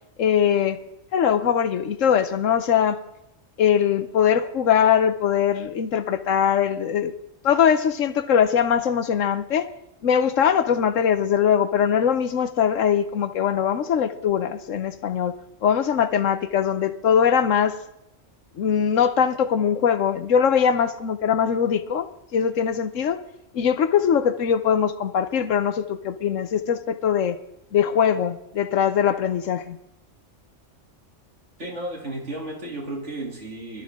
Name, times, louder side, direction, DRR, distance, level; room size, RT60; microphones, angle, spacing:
voice 1, 0.2-0.8 1.1-3.0 3.6-7.1 7.4-9.7 10.0-15.4 15.6-17.8 18.6-23.2 23.5-27.4 27.7-29.8, left 8 dB, 80° left, 1.2 m, -21 dB
voice 2, 31.6-33.8, right 1 dB, 65° right, 3.3 m, -33 dB
21.5 x 13.0 x 3.7 m
omnidirectional pair, 1.3 m